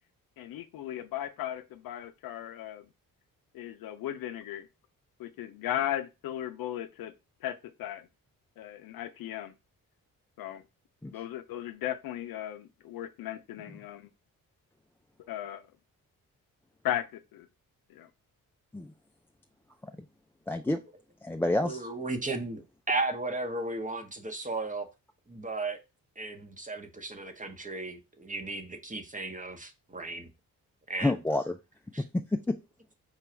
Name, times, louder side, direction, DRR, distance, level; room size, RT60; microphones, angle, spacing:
voice 1, 0.4-2.9 3.5-4.7 5.2-7.1 7.4-8.1 8.6-9.5 10.4-10.6 11.1-14.1 15.3-15.7 16.8-17.5 17.9-18.1, left 12 dB, 85° left, 0.6 m, -36 dB
voice 2, 20.5-20.8 21.2-21.9 31.0-31.6 32.1-32.5, left 2 dB, 5° left, 0.3 m, -28 dB
voice 3, 21.6-24.9 25.3-25.8 26.2-30.3 30.9-31.1 31.9-32.0, right 2 dB, 20° right, 0.9 m, -35 dB
5.0 x 2.3 x 4.3 m
cardioid pair, 75°, 34 cm